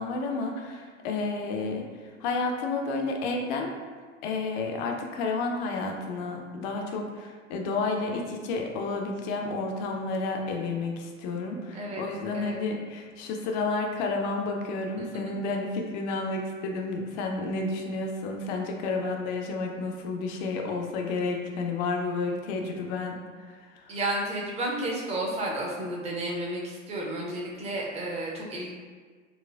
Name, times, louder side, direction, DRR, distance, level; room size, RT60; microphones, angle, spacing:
voice 1, 0.0-1.9 2.2-3.7 4.2-23.2, left 3 dB, 40° left, 2 dB, 0.4 m, -31 dB
voice 2, 11.7-12.0 12.3-12.6 15.0-15.1 23.9-28.7, right 1 dB, 15° right, -3 dB, 0.5 m, -32 dB
4.1 x 2.1 x 2.2 m, 1.5 s
figure-of-eight pair, 80°, 38 cm